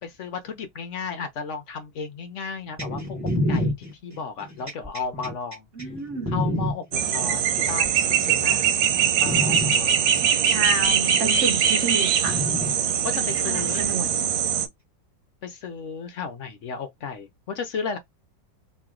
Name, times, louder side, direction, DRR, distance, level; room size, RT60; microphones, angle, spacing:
voice 1, 0.0-3.2 3.5-5.9 6.3-8.7 9.2-10.1 13.0-13.9 15.4-18.0, left 5 dB, 60° left, 0.8 m, -34 dB
sound 1, 2.8-6.7 7.7-8.3 8.8-8.9 9.3-9.7 10.8-10.9 12.3-12.7 13.9-14.0, equal, 10° right, 1.1 m, -27 dB
voice 2, 5.7-6.4 10.2-12.4 13.5-14.3, right 4 dB, 50° right, 1.0 m, -30 dB
sound 2, 6.9-14.7, right 8 dB, 80° right, 1.3 m, -22 dB
3.0 x 2.7 x 3.7 m
omnidirectional pair, 2.0 m